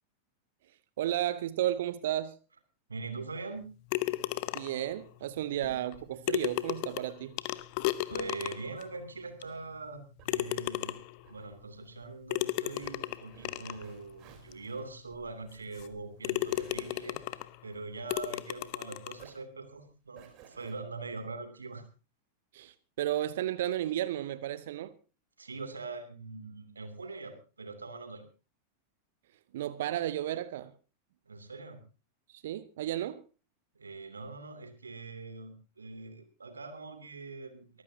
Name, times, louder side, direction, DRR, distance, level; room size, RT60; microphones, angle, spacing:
voice 1, 1.0-2.3 4.5-7.3 22.5-24.9 29.5-30.7 32.3-33.2, right 12 dB, 55° right, 0.7 m, -33 dB
voice 2, 2.9-3.7 8.1-11.0 11.3-17.2 17.6-21.8 25.4-28.2 31.3-31.8 33.7-37.8, right 3 dB, 75° right, 2.7 m, -42 dB
sound 1, 3.9-4.9 5.9-6.0 6.3-8.8 9.4-9.5 10.3-11.2 12.3-13.8 14.5-14.6 15.1-15.2 15.8-15.9 16.2-17.5 18.1-19.2, left 18 dB, 45° left, 0.8 m, -34 dB
sound 2, 5.6-6.0 8.1-8.4, left 6 dB, 70° left, 1.7 m, -49 dB
sound 3, 9.8-18.8 19.1-20.7, right 8 dB, 40° right, 3.7 m, -57 dB
23.5 x 14.5 x 2.8 m
figure-of-eight pair, 90°, 0 cm